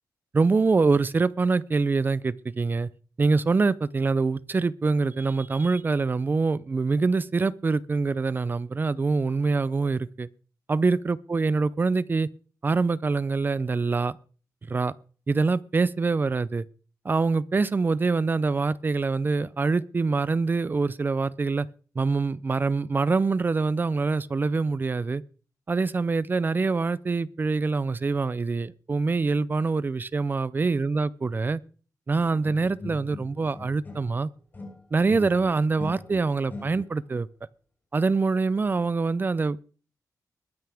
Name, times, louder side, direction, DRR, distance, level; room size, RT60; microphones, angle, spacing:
voice 1, 0.3-2.9 3.2-10.3 10.7-12.3 12.6-14.2 14.7-14.9 15.3-16.7 17.0-21.7 22.0-25.2 25.7-31.6 32.1-34.3 34.9-37.3 37.9-39.6, right 4 dB, 30° right, 0.5 m, -25 dB
sound 1, 32.4-34.2 34.5-37.1, left 2 dB, 30° left, 6.0 m, -41 dB
21.0 x 9.3 x 3.5 m
wide cardioid pair, 140°, 7 cm